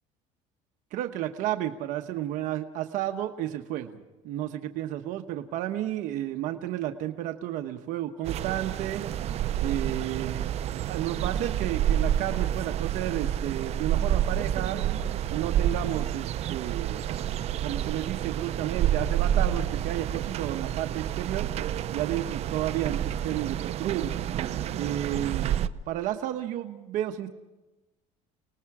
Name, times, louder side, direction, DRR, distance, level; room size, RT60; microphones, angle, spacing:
voice 1, 0.9-3.9 4.2-9.0 9.6-10.6 10.9-14.8 15.3-17.3 17.6-21.5 21.9-24.2 24.8-25.6 25.9-27.3, right 12 dB, 65° right, 5 dB, 1.1 m, -32 dB
sound 1, 8.2-25.7, right 10 dB, 45° right, 0.7 m, -29 dB
29.5 x 19.0 x 4.9 m, 1.1 s
cardioid pair, 125°, 14 cm